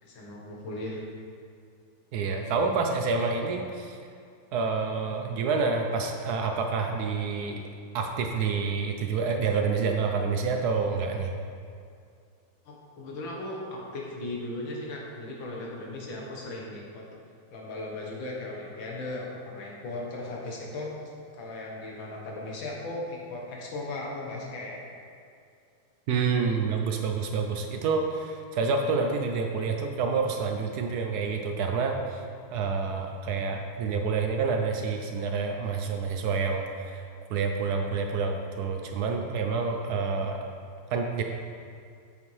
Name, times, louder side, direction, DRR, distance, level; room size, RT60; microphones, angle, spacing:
voice 1, 0.0-1.0 12.7-17.0 17.5-20.9 21.3-24.8, left 2 dB, 75° left, -3 dB, 2.0 m, -37 dB
voice 2, 2.1-4.0 4.5-7.6 7.9-11.3 26.1-32.2 32.5-37.0 37.3-40.5 40.9-41.2, right 4 dB, 75° right, 3 dB, 0.9 m, -28 dB
8.2 x 6.8 x 3.2 m, 2.3 s
omnidirectional pair, 2.2 m